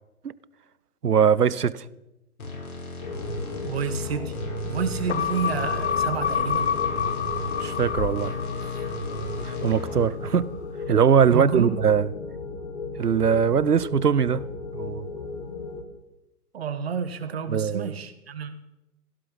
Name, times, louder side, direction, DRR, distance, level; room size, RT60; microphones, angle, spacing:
voice 1, 1.0-1.8 7.6-8.4 8.6-8.7 9.4-10.6 10.9-12.1 13.0-14.5 14.7-15.1 17.5-18.0, right 7 dB, 80° right, 0.9 m, -21 dB
sound 1, 2.4-10.1, left 1 dB, 65° left, 5.9 m, -35 dB
sound 2, 3.0-15.8, left 3 dB, 25° left, 1.7 m, -36 dB
voice 2, 3.6-4.3 4.6-6.7 11.3-11.8 16.5-18.5, right 6 dB, 40° right, 1.4 m, -29 dB
sound 3, 5.1-9.8 10.1-10.2, left 8 dB, 45° left, 0.8 m, -28 dB
16.5 x 12.0 x 5.5 m
figure-of-eight pair, 140°, 46 cm